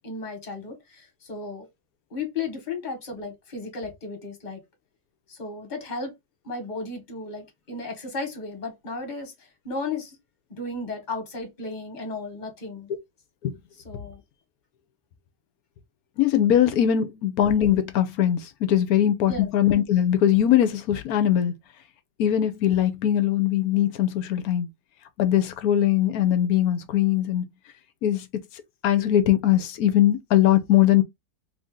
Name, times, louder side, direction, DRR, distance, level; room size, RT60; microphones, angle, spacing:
voice 1, 0.0-1.7 2.1-4.6 5.3-6.2 6.4-10.2 10.5-12.9 13.8-14.2 19.2-19.5, left 3 dB, 30° left, 1.3 m, -34 dB
voice 2, 16.2-21.5 22.2-24.7 25.2-27.5 28.0-28.4 28.8-31.0, left 11 dB, 70° left, 1.0 m, -21 dB
3.2 x 2.7 x 3.6 m
omnidirectional pair, 1.8 m